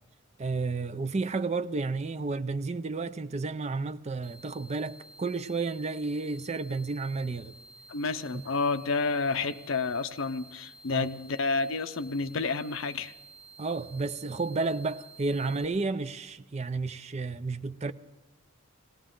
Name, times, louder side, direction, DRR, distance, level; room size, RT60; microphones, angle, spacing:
voice 1, 0.4-7.6 8.3-8.4 10.9-11.1 13.6-17.9, right 3 dB, 30° right, 0.5 m, -32 dB
sound 1, 4.2-15.6, right 2 dB, 85° right, 1.5 m, -52 dB
voice 2, 7.9-13.1, left 4 dB, 65° left, 0.6 m, -30 dB
19.0 x 17.5 x 3.8 m
head